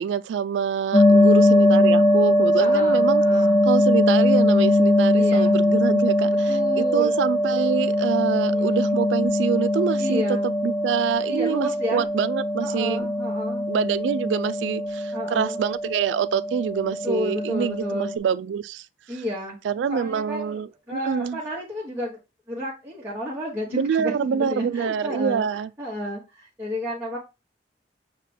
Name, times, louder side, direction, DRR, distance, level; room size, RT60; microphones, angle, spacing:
voice 1, 0.0-3.2 3.7-10.4 10.6-13.1 13.7-18.9 19.6-21.4 23.7-25.7, right 7 dB, 85° right, 0.3 m, -26 dB
sound 1, 0.9-18.2, left 1 dB, 30° left, 0.8 m, -21 dB
voice 2, 1.1-1.5 2.6-3.6 5.1-5.6 6.5-7.2 8.3-8.8 10.0-10.5 11.3-12.1 12.6-13.6 15.1-15.6 17.0-18.1 19.1-19.6 19.9-20.6 20.9-22.2 22.5-25.4 25.8-27.2, left 1 dB, 15° right, 1.0 m, -31 dB
6.4 x 2.2 x 3.3 m
head